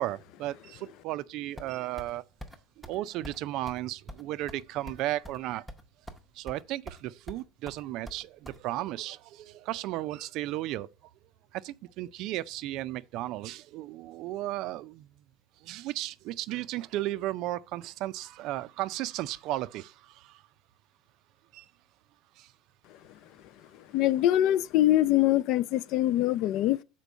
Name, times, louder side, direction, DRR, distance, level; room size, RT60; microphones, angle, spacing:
voice 1, 0.0-2.2 2.8-5.6 6.3-10.9 11.5-15.1 15.6-20.4 21.5-21.7 22.4-22.5, right 15 dB, 50° right, 0.4 m, -35 dB
sound 1, 1.6-2.1 2.4-2.6 2.8-3.0 3.2-3.4 3.7-3.8 4.1-5.4 5.7-6.2 6.5-7.0 7.3-8.6, equal, ahead, 0.7 m, -44 dB
voice 2, 23.9-26.8, left 13 dB, 50° left, 0.3 m, -23 dB
6.8 x 4.5 x 6.1 m
cardioid pair, 155°, 0 cm